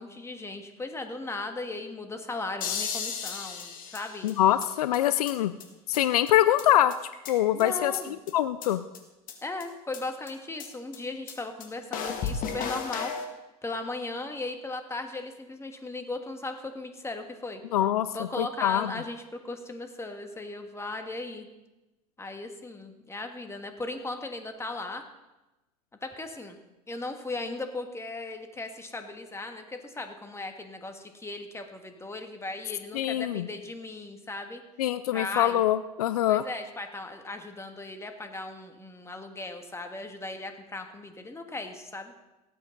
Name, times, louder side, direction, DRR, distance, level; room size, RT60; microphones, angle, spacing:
voice 1, 0.0-4.3 7.5-8.2 9.4-13.1 13.6-17.6 18.1-21.5 22.2-25.0 26.0-26.6 26.9-34.6 35.1-35.6 36.3-42.1, left 2 dB, 15° left, 6 dB, 1.7 m, -37 dB
sound 1, 2.6-4.7 4.9-5.0 5.3-5.4 5.6-5.7 5.9-6.0 6.3-6.4 6.6-6.7 6.9-7.6 7.9-8.0 8.3-8.4 8.6-8.7 8.9-9.0 9.3-9.4 9.6-9.7 9.9-10.0 10.3-10.4 10.6-10.7 10.9-11.0 11.3-11.4 11.6-11.7 11.9-13.3, left 6 dB, 45° left, 2.1 m, -34 dB
voice 2, 4.2-5.5 5.9-6.9 7.3-7.9 8.3-8.8 17.7-18.1 18.4-18.9 32.9-33.5 34.8-36.4, left 12 dB, 80° left, 13 dB, 0.5 m, -24 dB
18.0 x 8.6 x 4.0 m, 1.0 s
hypercardioid pair, 85°, 19 cm